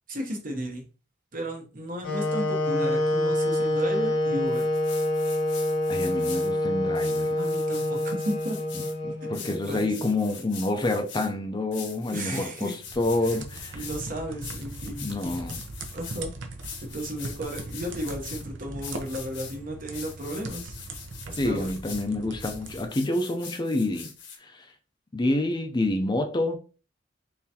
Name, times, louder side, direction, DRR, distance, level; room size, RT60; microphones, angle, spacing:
voice 1, 0.1-0.9 1.3-4.7 7.4-8.6 9.4-9.9 12.1-12.7 13.7-15.3 15.9-16.3 16.8-20.8 21.3-21.7, equal, 45° right, 1.0 m, -34 dB
Wind instrument woodwind instrument, 2.0-10.0, left 1 dB, 85° left, 1.0 m, -27 dB
sound 1, 4.5-6.5 7.0-8.9 9.3-11.3 11.7-14.0 14.4-16.2 16.6-18.4 18.8-19.6 19.9-22.0 22.4-24.4, left 6 dB, 65° left, 1.0 m, -43 dB
voice 2, 5.9-7.3 9.0-13.8 15.0-15.6 21.4-24.1 24.4-24.7 25.1-26.6, left 2 dB, 25° left, 0.5 m, -28 dB
sound 2, 12.8-22.9, right 2 dB, 75° right, 0.7 m, -40 dB
3.8 x 3.3 x 2.8 m
head